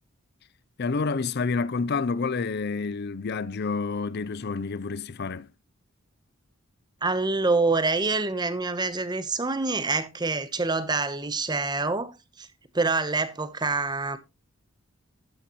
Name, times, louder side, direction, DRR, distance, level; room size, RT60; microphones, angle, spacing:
voice 1, 0.8-5.5, left 4 dB, 50° left, 0.5 m, -29 dB
voice 2, 7.0-12.5 12.7-14.2, right 3 dB, 20° right, 1.0 m, -26 dB
12.5 x 9.0 x 3.0 m
head